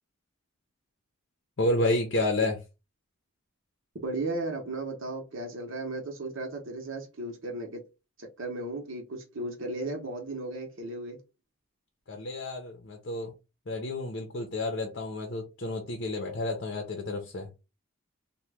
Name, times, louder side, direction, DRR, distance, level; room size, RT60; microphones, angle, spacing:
voice 1, 1.6-2.6 12.1-13.3 13.7-17.5, left 2 dB, 50° left, 0.6 m, -30 dB
voice 2, 4.0-7.8 8.2-11.2, right 2 dB, 65° right, 0.8 m, -35 dB
2.8 x 2.2 x 3.4 m
head